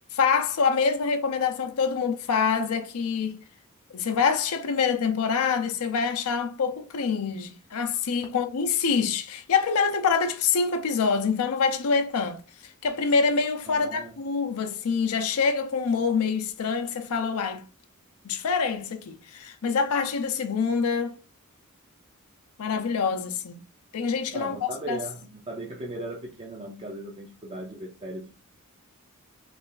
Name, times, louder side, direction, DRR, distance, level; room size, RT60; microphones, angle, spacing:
voice 1, 0.1-3.4 3.9-17.6 18.2-21.1 22.6-23.6 23.9-25.0, left 5 dB, 80° left, 0.5 m, -26 dB
voice 2, 13.7-14.2 24.3-28.3, right 1 dB, 25° right, 0.5 m, -37 dB
3.2 x 2.4 x 3.8 m
head